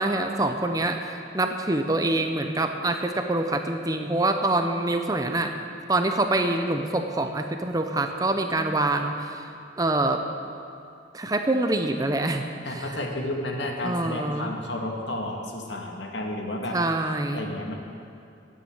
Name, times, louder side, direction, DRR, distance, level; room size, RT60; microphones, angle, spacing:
voice 1, 0.0-5.6 5.9-10.2 11.1-12.4 12.7-13.0 13.8-14.5 16.7-17.5, right 2 dB, 20° right, 5 dB, 0.7 m, -25 dB
voice 2, 12.6-16.8 17.3-17.7, left 1 dB, 75° left, 1 dB, 1.9 m, -31 dB
12.0 x 9.4 x 8.7 m, 2.6 s
head